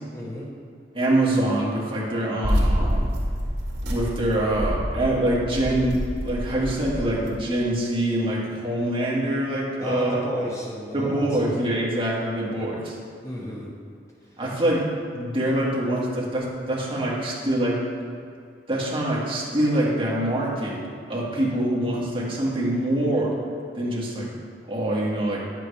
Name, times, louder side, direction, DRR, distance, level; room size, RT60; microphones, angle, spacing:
voice 1, 0.1-0.5 9.8-11.6 13.2-13.7, equal, 15° left, -5 dB, 1.2 m, -33 dB
voice 2, 0.9-3.1 3.8-10.2 10.9-13.0 14.4-14.9 15.1-17.8 18.7-20.8 21.1-23.3 23.7-24.3 24.7-25.4, right 1 dB, 30° right, -6 dB, 1.9 m, -24 dB
sound 1, 2.4-7.3, equal, 65° right, 2.2 m, -27 dB
10.5 x 7.7 x 3.4 m, 2.3 s
head